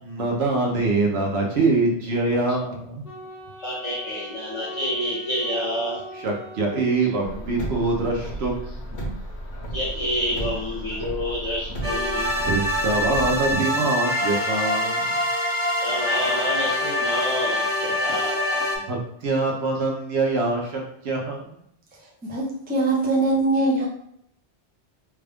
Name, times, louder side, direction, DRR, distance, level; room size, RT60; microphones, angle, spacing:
voice 1, 0.0-3.1 6.2-8.9 12.4-15.1 18.9-21.6, right 3 dB, 70° right, -1 dB, 1.0 m, -24 dB
Wind instrument woodwind instrument, 3.0-7.5, right 1 dB, 55° left, 1.2 m, -40 dB
voice 2, 3.6-6.0 9.7-12.3 15.8-18.6, equal, 30° left, -10 dB, 1.0 m, -28 dB
Car, 7.2-13.5, right 1 dB, 75° left, 1.2 m, -33 dB
sound 1, 11.8-18.8, left 1 dB, 50° right, 1.5 m, -25 dB
voice 3, 22.2-23.9, right 2 dB, 10° right, -3 dB, 0.5 m, -22 dB
3.5 x 2.4 x 3.4 m, 0.71 s
omnidirectional pair, 1.1 m